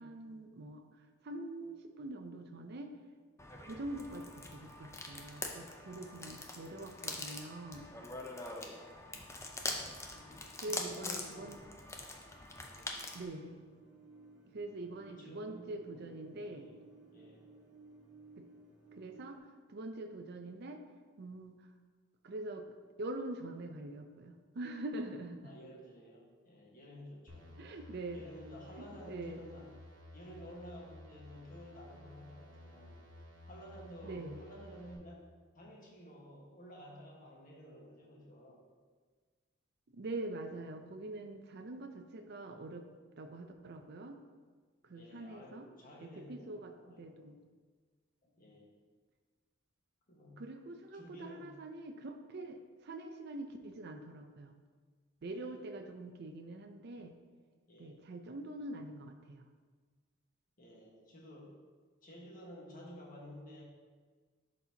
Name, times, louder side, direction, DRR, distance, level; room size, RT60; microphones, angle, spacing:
voice 1, 0.0-2.9 3.6-7.9 10.6-11.6 13.1-13.6 14.5-16.7 18.4-18.5 18.9-19.4 19.7-20.8 21.2-21.7 22.2-25.6 27.6-28.2 28.8-29.4 34.0-34.4 39.9-42.9 43.2-44.2 44.8-45.7 46.0-47.4 50.4-54.6 55.2-57.2 57.8-59.5, right 2 dB, 55° right, 5 dB, 0.5 m, -44 dB
sound 1, 3.4-13.3, left 2 dB, 15° left, 0.6 m, -44 dB
voice 2, 8.2-9.0 10.1-11.5 12.6-13.0 15.1-16.8 17.1-17.4 25.4-27.6 28.1-29.7 30.1-33.0 33.4-35.2 35.5-38.6 44.9-47.2 48.2-48.8 50.1-50.4 50.9-51.6 55.2-55.6 57.7-58.0 60.6-61.5 62.0-63.6, equal, 45° left, -3 dB, 1.4 m, -53 dB
sound 2, 13.3-19.4, right 3 dB, 20° right, 1.3 m, -58 dB
sound 3, 27.3-35.0, left 1 dB, 75° right, 1.3 m, -55 dB
11.5 x 4.2 x 2.8 m, 1.5 s
head